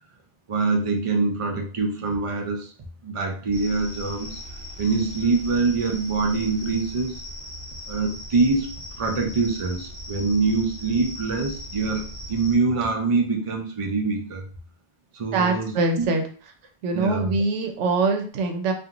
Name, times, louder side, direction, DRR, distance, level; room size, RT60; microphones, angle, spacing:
voice 1, 0.5-2.7 3.0-4.4 4.8-7.2 7.9-8.7 9.0-14.4 15.1-16.1 16.9-17.3, right 4 dB, 50° right, 1 dB, 0.4 m, -24 dB
sound 1, 3.5-12.5, equal, 25° right, 1.0 m, -38 dB
voice 2, 15.3-16.2 16.8-18.7, right 3 dB, 85° right, 4 dB, 0.9 m, -23 dB
2.9 x 2.5 x 2.5 m, 0.41 s
omnidirectional pair, 1.2 m